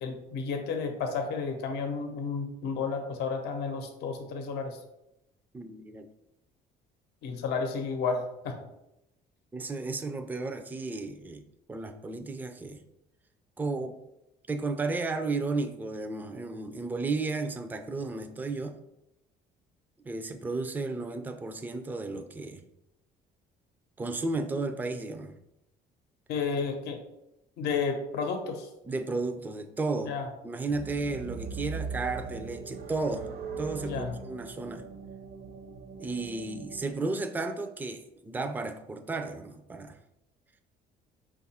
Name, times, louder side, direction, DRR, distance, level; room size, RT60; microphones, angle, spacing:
voice 1, 0.0-4.8 7.2-8.6 26.3-27.0 27.6-28.7 30.1-30.2 33.8-34.2, left 5 dB, 80° left, 4 dB, 0.7 m, -32 dB
voice 2, 5.5-6.1 9.5-11.4 11.7-12.8 13.6-14.0 14.5-18.8 20.0-22.6 24.0-25.3 28.8-30.2 30.4-33.3 33.6-34.8 36.0-40.0, right 3 dB, 10° right, 7 dB, 0.4 m, -33 dB
sound 1, 30.7-36.9, right 5 dB, 60° right, 0.7 m, -40 dB
5.3 x 2.4 x 4.1 m, 0.88 s
cardioid pair, 110°, 17 cm